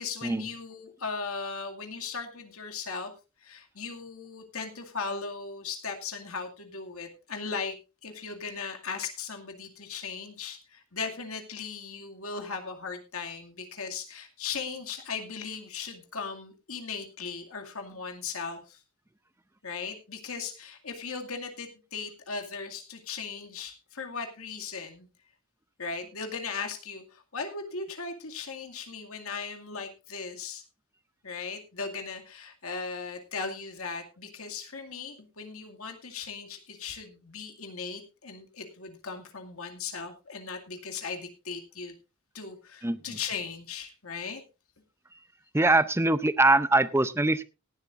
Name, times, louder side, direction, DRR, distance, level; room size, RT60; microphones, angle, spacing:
voice 1, 0.0-3.1 3.4-7.8 8.0-18.8 19.6-25.1 25.8-30.6 31.2-41.9 42.3-44.4, left 5 dB, 70° left, 4 dB, 2.2 m, -38 dB
voice 2, 45.5-47.4, right 2 dB, 10° right, 14 dB, 0.6 m, -22 dB
18.0 x 11.5 x 2.5 m, 0.29 s
head